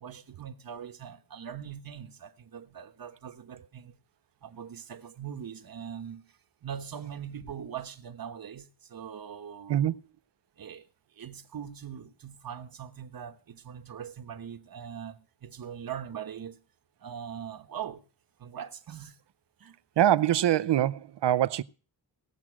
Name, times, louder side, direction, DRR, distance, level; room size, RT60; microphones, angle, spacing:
voice 1, 0.0-4.0 4.4-6.2 6.6-10.0 10.6-10.8 11.2-16.6 17.0-18.0 18.4-19.2 19.6-19.8, right 8 dB, 50° right, 1.2 m, -41 dB
voice 2, 20.0-21.6, right 12 dB, 70° right, 0.6 m, -24 dB
18.0 x 7.5 x 6.1 m
wide cardioid pair, 135°, 43 cm